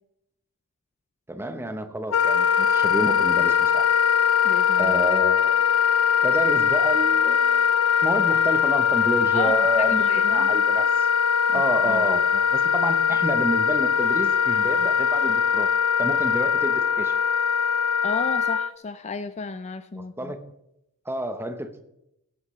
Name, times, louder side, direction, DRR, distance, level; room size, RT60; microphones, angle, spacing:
voice 1, 1.3-3.9 4.7-5.6 6.2-7.6 8.0-11.1 11.5-15.7 16.0-17.2 19.9-20.4 21.1-21.8, right 1 dB, 10° right, 8 dB, 0.9 m, -29 dB
Wind instrument woodwind instrument, 2.1-18.7, left 7 dB, 75° left, 0.6 m, -21 dB
voice 2, 4.4-4.9 9.3-9.5 9.9-10.5 11.5-11.6 11.9-12.0 18.0-20.3, left 4 dB, 30° left, 12 dB, 0.4 m, -33 dB
15.5 x 9.8 x 3.2 m, 0.83 s
head